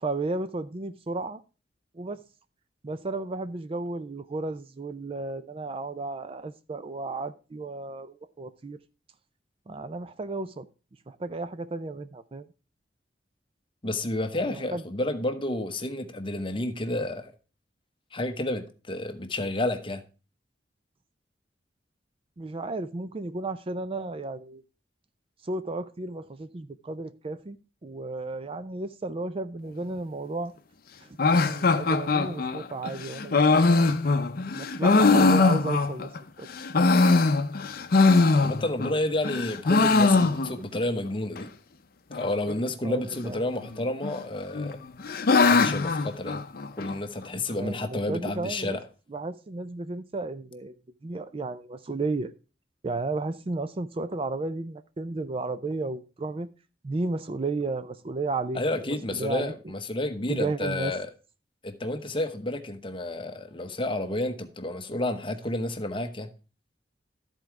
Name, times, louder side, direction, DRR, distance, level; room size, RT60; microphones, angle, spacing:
voice 1, 0.0-1.4 1.9-2.2 2.8-8.8 9.7-10.7 11.1-12.4 14.5-14.8 22.4-24.6 25.4-27.6 27.8-30.5 31.0-31.2 31.4-33.4 33.7-33.9 34.5-36.1 36.4-36.5 42.8-43.4 47.6-48.8 49.1-50.8 51.0-52.3 52.8-56.5 56.8-58.6 58.9-59.5 60.3-60.9, right 3 dB, 35° right, 0.4 m, -33 dB
voice 2, 13.8-17.3 18.1-20.0 38.4-41.5 42.1-44.8 45.4-46.4 46.8-48.8 58.5-61.1 61.6-66.3, left 1 dB, 30° left, 0.9 m, -30 dB
sound 1, 31.2-36.2 36.6-38.9 39.2-40.8 41.0-41.1 41.4-41.5 42.1-42.5 43.6-44.2 44.5-47.0, left 3 dB, 55° left, 0.6 m, -22 dB
13.0 x 4.5 x 4.7 m
head